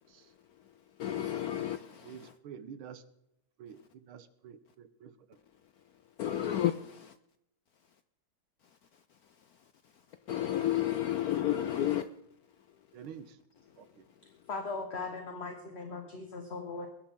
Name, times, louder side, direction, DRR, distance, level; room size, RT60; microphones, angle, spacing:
voice 1, 1.0-1.8 6.2-6.7 10.3-12.0, left 12 dB, 85° left, 0.8 m, -30 dB
voice 2, 2.0-3.0 3.6-3.8 4.1-5.1 12.9-13.4 13.8-14.1, right 8 dB, 80° right, 1.9 m, -48 dB
voice 3, 14.5-16.9, left 3 dB, 35° left, 1.3 m, -39 dB
21.5 x 11.5 x 3.7 m
omnidirectional pair, 2.3 m